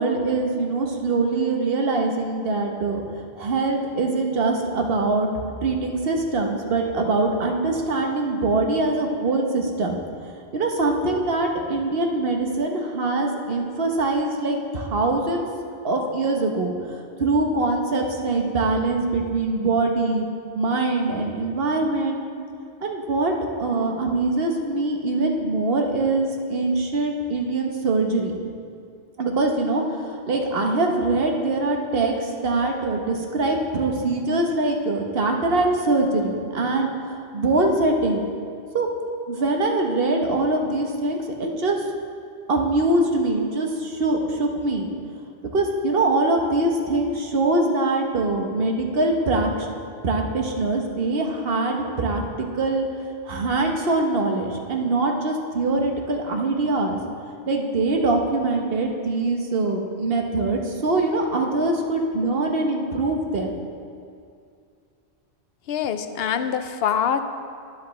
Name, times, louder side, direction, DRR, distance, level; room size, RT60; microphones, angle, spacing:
voice 1, 0.0-3.0 3.4-5.3 5.6-10.0 10.5-15.5 15.8-20.2 20.5-22.2 22.8-28.3 29.2-38.2 38.7-38.9 39.3-41.8 42.5-44.9 45.5-49.7 50.0-52.8 53.2-57.0 57.5-63.5, right 2 dB, 65° right, 2 dB, 1.2 m, -23 dB
voice 2, 65.7-67.2, left 8 dB, 70° left, 9 dB, 0.8 m, -24 dB
12.5 x 10.0 x 3.2 m, 2.4 s
omnidirectional pair, 1.1 m